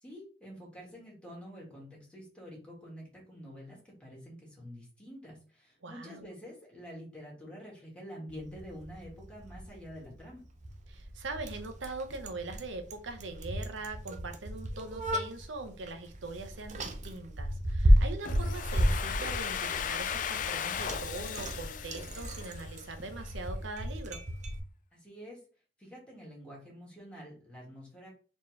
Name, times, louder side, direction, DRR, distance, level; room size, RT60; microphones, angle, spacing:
voice 1, 0.0-10.4 24.9-25.4 25.8-28.1, equal, 5° left, -4 dB, 1.8 m, -47 dB
voice 2, 5.8-6.3 10.9-24.2, right 3 dB, 80° right, 6 dB, 0.8 m, -42 dB
Bicycle, 8.3-24.6, equal, 40° right, 0.6 m, -33 dB
Domestic sounds home sounds, 18.2-23.0, left 8 dB, 45° left, 0.3 m, -36 dB
4.3 x 3.0 x 3.2 m, 0.38 s
head